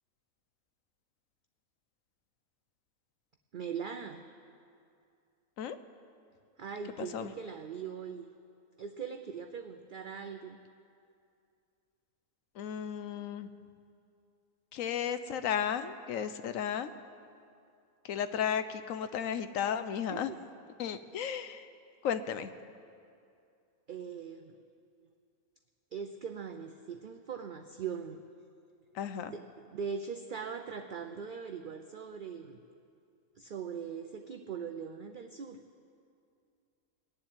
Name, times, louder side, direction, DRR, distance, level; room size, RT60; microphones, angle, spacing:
voice 1, 3.5-4.2 6.6-8.3 8.8-10.6 20.1-20.4 23.9-24.6 25.9-28.2 29.2-32.6 33.4-35.6, right 6 dB, 55° right, 6 dB, 0.6 m, -41 dB
voice 2, 7.0-7.3 12.6-13.5 14.7-16.9 18.0-20.3 20.8-21.7 22.0-22.5 28.9-29.3, left 8 dB, 70° left, 11 dB, 1.0 m, -34 dB
19.5 x 7.5 x 9.6 m, 2.5 s
omnidirectional pair, 1.5 m